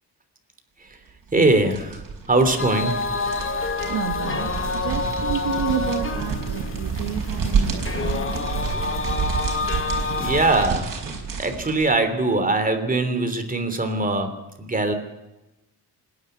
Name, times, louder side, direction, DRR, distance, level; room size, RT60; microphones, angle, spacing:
voice 1, 1.3-3.1 9.8-9.9 10.2-14.9, right 2 dB, 20° right, 7 dB, 3.2 m, -22 dB
sound 1, 1.3-12.0, right 5 dB, 55° right, 4.6 m, -29 dB
sound 2, 2.6-10.7, left 4 dB, 30° left, 1.6 m, -28 dB
voice 2, 3.9-4.5 4.8-8.4, right 10 dB, 90° right, 4 dB, 1.4 m, -30 dB
26.0 x 10.5 x 9.4 m, 1.0 s
cardioid pair, 125°, 39 cm